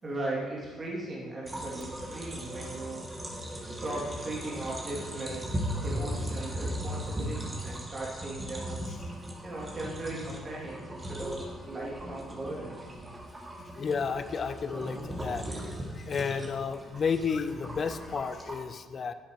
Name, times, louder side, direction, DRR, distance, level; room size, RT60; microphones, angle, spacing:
voice 1, 0.0-3.0 3.6-5.5 5.8-8.9 9.4-12.8, right 2 dB, 35° right, -5 dB, 2.8 m, -38 dB
sound 1, 1.4-18.6, equal, 20° right, 2.4 m, -38 dB
voice 2, 13.8-19.1, left 6 dB, 45° left, 11 dB, 0.7 m, -32 dB
11.5 x 10.0 x 3.2 m, 1.4 s
hypercardioid pair, 45°, 0 cm